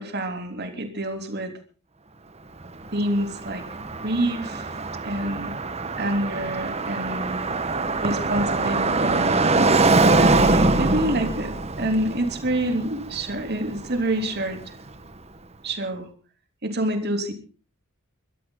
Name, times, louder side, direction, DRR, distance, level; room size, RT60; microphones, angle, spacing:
voice 1, 0.0-1.5 2.9-3.6 4.0-4.7 5.0-5.5 6.0-7.4 8.0-9.4 10.2-14.7 15.6-16.1 16.6-17.3, right 1 dB, 50° right, 6 dB, 3.4 m, -27 dB
Car passing by, 2.6-14.6, right 3 dB, 30° right, 1.4 m, -23 dB
23.5 x 13.5 x 3.9 m, 0.39 s
head